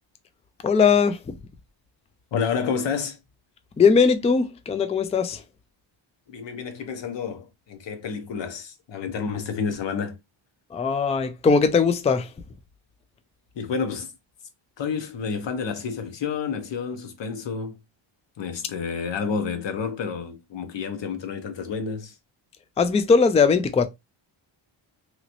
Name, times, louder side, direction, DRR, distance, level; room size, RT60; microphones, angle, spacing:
voice 1, 0.6-1.3 3.8-5.4 10.7-12.3 22.8-23.9, left 5 dB, 15° left, 0.3 m, -20 dB
voice 2, 2.3-3.2 6.3-10.2 13.5-14.1 14.8-17.8 18.4-22.1, left 6 dB, 60° left, 0.9 m, -30 dB
3.0 x 2.9 x 2.5 m
cardioid pair, 115°, 49 cm